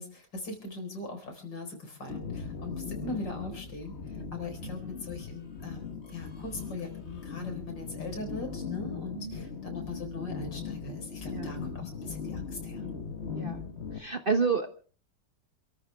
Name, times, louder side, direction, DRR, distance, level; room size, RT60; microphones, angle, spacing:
voice 1, 0.0-12.8, left 2 dB, 80° left, 5 dB, 5.0 m, -40 dB
sound 1, 2.1-14.0, left 5 dB, 40° left, 1.5 m, -39 dB
voice 2, 13.3-13.6 13.9-14.7, right 5 dB, 35° right, 8 dB, 1.0 m, -29 dB
28.0 x 13.5 x 3.4 m, 0.39 s
omnidirectional pair, 1.9 m